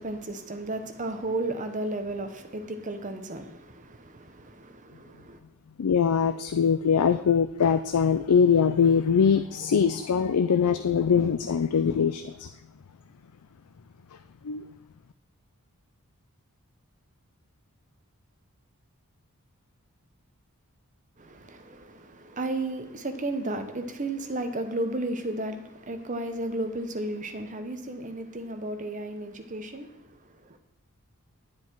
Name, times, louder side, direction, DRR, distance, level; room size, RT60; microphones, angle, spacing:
voice 1, 0.0-5.4 21.2-30.6, right 2 dB, 35° right, 1.0 m, -34 dB
voice 2, 5.8-12.5 14.4-14.7, left 6 dB, 90° left, 0.5 m, -22 dB
9.7 x 9.5 x 4.6 m
head